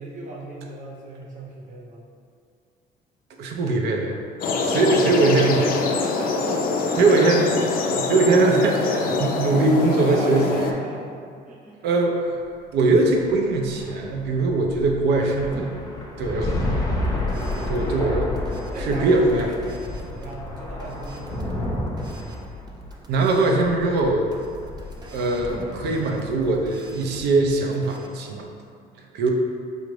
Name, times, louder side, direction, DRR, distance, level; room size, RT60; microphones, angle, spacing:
voice 1, 0.0-2.1 5.3-6.9 9.9-11.2 11.5-11.8 17.5-17.9 18.7-21.8 26.7-26.9, right 1 dB, 50° right, -2 dB, 0.8 m, -37 dB
voice 2, 3.4-4.2 4.6-5.6 7.0-10.4 11.8-12.4 12.7-15.7 16.2-16.9 17.7-18.3 18.8-19.5 23.1-24.3 25.1-28.5 29.1-29.3, right 3 dB, 80° right, 1 dB, 0.5 m, -21 dB
sound 1, 4.4-10.7, left 3 dB, 60° left, 0.4 m, -24 dB
sound 2, 12.8-26.4, left 1 dB, 20° left, 0.6 m, -31 dB
sound 3, 16.8-28.1, right 1 dB, 25° right, 0.5 m, -43 dB
4.9 x 2.5 x 3.1 m, 2.4 s
cardioid pair, 110°, 17 cm